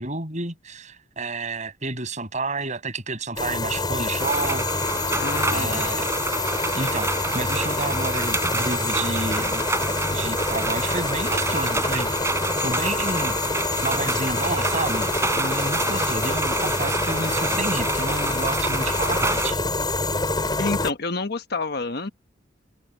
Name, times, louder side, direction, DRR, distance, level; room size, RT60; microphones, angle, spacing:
voice 1, 0.0-4.7 5.5-6.1 6.7-9.7 10.1-12.1 12.6-13.4 13.8-19.6, right 3 dB, 40° right, 7.5 m, -30 dB
sound 1, 3.4-20.9, left 3 dB, 20° left, 4.4 m, -26 dB
sound 2, 4.2-19.5, right 3 dB, 15° right, 4.7 m, -28 dB
voice 2, 5.1-5.8 20.6-22.1, left 3 dB, 55° left, 1.2 m, -28 dB
head